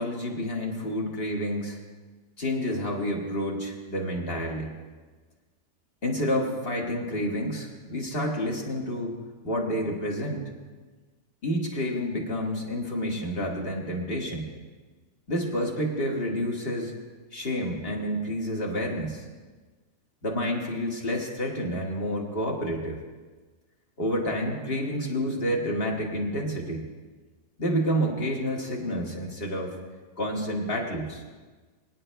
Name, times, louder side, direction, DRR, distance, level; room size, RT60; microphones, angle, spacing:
voice 1, 0.0-1.8 2.4-4.7 6.0-9.1 9.4-10.4 11.4-14.5 15.3-16.9 17.3-19.2 20.2-23.0 24.0-26.8 27.6-29.8 30.2-31.2, equal, 35° left, -1 dB, 1.8 m, -29 dB
23.5 x 10.0 x 2.3 m, 1.3 s
omnidirectional pair, 1.8 m